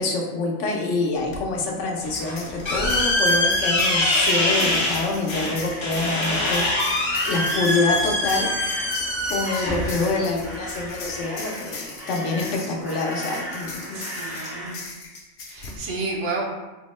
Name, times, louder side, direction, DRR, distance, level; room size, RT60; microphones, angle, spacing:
voice 1, 0.0-8.5 9.3-14.0, left 3 dB, 90° left, -1 dB, 0.9 m, -26 dB
sound 1, 1.2-1.4 2.1-15.8, left 4 dB, 70° left, 0.9 m, -39 dB
sound 2, 2.0-11.1, left 1 dB, 45° left, 0.4 m, -24 dB
sound 3, 5.0-14.7, equal, 20° right, 0.4 m, -37 dB
voice 2, 7.7-8.0 13.9-15.0 15.4-16.4, right 3 dB, 80° right, -1 dB, 1.0 m, -31 dB
4.2 x 2.0 x 3.0 m, 1.1 s
omnidirectional pair, 1.2 m